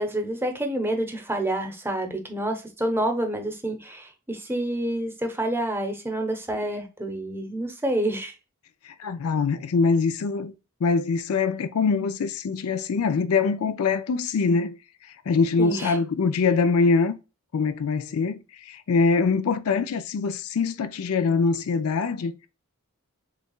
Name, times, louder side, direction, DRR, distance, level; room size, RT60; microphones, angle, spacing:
voice 1, 0.0-8.3 15.6-16.0, right 1 dB, 10° right, 0.8 m, -28 dB
voice 2, 8.8-10.5 10.8-14.8 15.0-17.2 17.5-22.5, left 4 dB, 70° left, 0.4 m, -23 dB
6.5 x 2.3 x 2.3 m
head